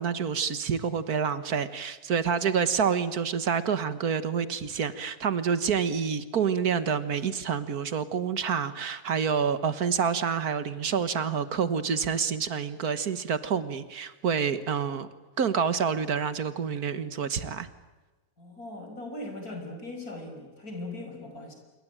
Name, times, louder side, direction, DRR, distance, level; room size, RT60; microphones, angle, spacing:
voice 1, 0.0-15.1 15.4-17.7, right 6 dB, 85° right, 12 dB, 2.0 m, -28 dB
voice 2, 18.4-21.6, left 2 dB, 80° left, 4 dB, 6.0 m, -39 dB
26.5 x 23.0 x 9.1 m, 1.2 s
omnidirectional pair, 1.6 m